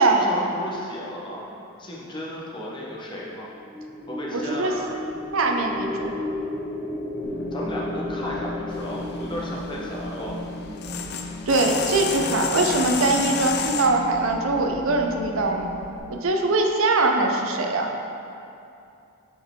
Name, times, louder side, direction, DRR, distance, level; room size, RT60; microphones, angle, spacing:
voice 1, 0.1-1.5 1.8-3.5 4.1-4.9 7.5-10.4, equal, 20° left, -4 dB, 1.0 m, -34 dB
sound 1, 3.5-11.9, left 2 dB, ahead, 0.9 m, -34 dB
voice 2, 4.3-4.7 5.3-6.1 11.5-15.7 16.1-17.9, right 2 dB, 65° right, 2 dB, 0.6 m, -22 dB
sound 2, 7.2-16.0, left 1 dB, 85° left, 1.0 m, -37 dB
sound 3, 8.7-13.9, left 6 dB, 50° left, 0.4 m, -31 dB
9.1 x 4.5 x 3.7 m, 2.7 s
head